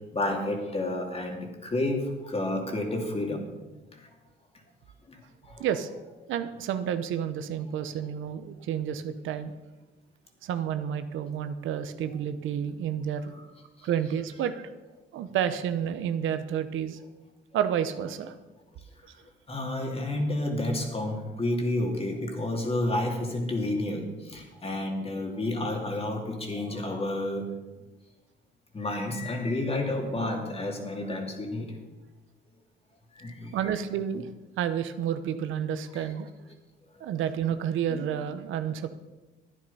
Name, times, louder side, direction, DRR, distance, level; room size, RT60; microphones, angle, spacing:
voice 1, 0.1-3.5 3.9-4.1 5.1-5.7 13.3-13.4 13.8-13.9 19.5-27.5 28.7-31.7 33.1-33.6 35.9-36.0 37.9-38.0, left 1 dB, 30° left, 2 dB, 2.6 m, -30 dB
voice 2, 5.6-5.9 6.3-9.5 10.4-13.2 13.8-14.7 15.1-17.0 17.5-18.4 33.5-34.3 34.6-36.3 37.0-38.9, right 9 dB, 80° right, 10 dB, 0.9 m, -30 dB
12.0 x 9.6 x 5.5 m, 1.1 s
cardioid pair, 90°, 20 cm